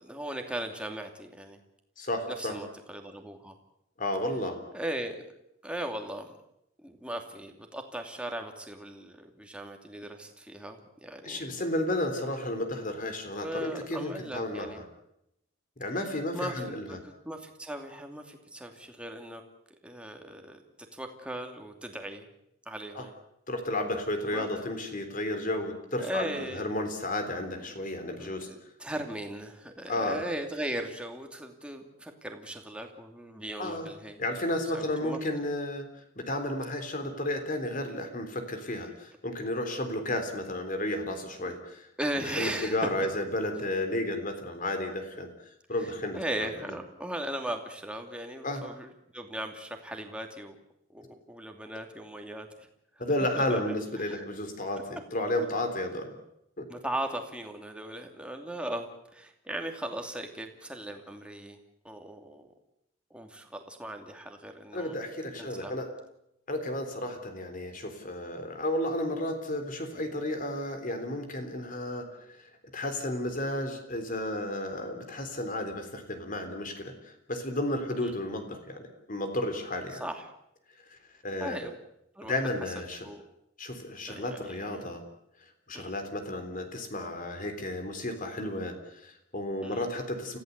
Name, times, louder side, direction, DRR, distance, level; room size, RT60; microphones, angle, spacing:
voice 1, 0.0-1.6 2.3-3.6 4.7-5.3 5.6-6.4 6.8-11.7 13.4-14.8 16.3-19.4 19.8-22.3 22.7-23.2 24.3-24.5 26.0-26.7 28.1-34.2 34.7-35.2 42.0-42.9 45.8-50.6 50.9-52.7 53.4-53.6 54.0-54.2 56.7-61.6 61.8-62.5 63.1-65.0 65.4-65.7 78.0-78.1 79.9-80.3 81.4-81.7 82.2-82.3 83.0-83.2 84.1-84.9 85.7-85.9 89.6-89.8, right 1 dB, 5° right, 4 dB, 2.7 m, -38 dB
voice 2, 2.0-2.6 4.0-4.6 11.2-14.8 15.8-17.0 23.0-23.1 23.5-28.5 29.9-30.2 33.6-33.9 34.2-35.9 36.2-41.6 42.4-45.3 45.7-46.5 48.4-48.6 53.0-56.1 56.6-56.7 64.7-65.9 66.5-80.0 80.9-81.0 81.2-81.7 82.2-83.1 83.6-85.0 85.7-90.4, left 1 dB, 45° left, 7 dB, 3.6 m, -32 dB
29.0 x 15.0 x 8.2 m, 0.81 s
head